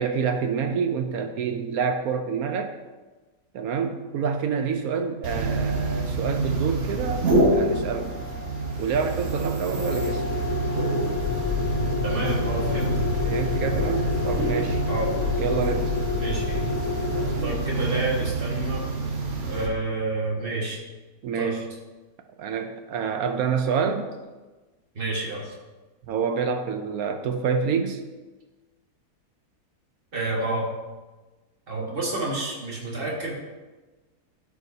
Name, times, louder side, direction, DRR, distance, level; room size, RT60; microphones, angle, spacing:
voice 1, 0.0-2.7 3.5-7.2 7.5-8.1 8.8-10.2 13.2-14.8 15.4-15.9 21.2-21.6 22.4-24.1 26.1-28.0, right 6 dB, 70° right, 6 dB, 0.9 m, -27 dB
sound 1, 5.2-19.7, right 1 dB, 50° right, 1.2 m, -26 dB
sound 2, 11.2-17.6, left 7 dB, 80° left, 1.3 m, -31 dB
voice 2, 12.0-13.0 14.9-15.1 16.2-16.7 17.1-18.9 19.4-20.8 21.3-21.5 24.9-25.5 30.1-30.7 31.7-33.3, right 2 dB, 35° right, -3 dB, 1.6 m, -29 dB
12.5 x 4.7 x 2.7 m, 1.2 s
omnidirectional pair, 1.8 m